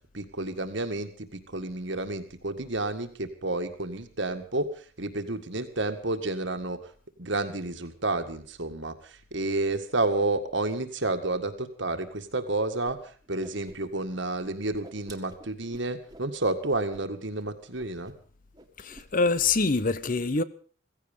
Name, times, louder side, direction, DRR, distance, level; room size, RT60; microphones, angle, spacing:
voice 1, 0.1-6.9 7.2-13.0 13.3-18.1, right 2 dB, 60° right, 1.9 m, -30 dB
Whoosh swoosh swish, 12.8-12.9 13.2-14.1 14.4-16.3 16.7-17.0 17.3-17.4 17.8-18.3 18.5-19.1, right 1 dB, 20° right, 1.8 m, -50 dB
voice 2, 18.8-20.4, left 3 dB, 40° left, 0.7 m, -25 dB
16.0 x 16.0 x 5.3 m
head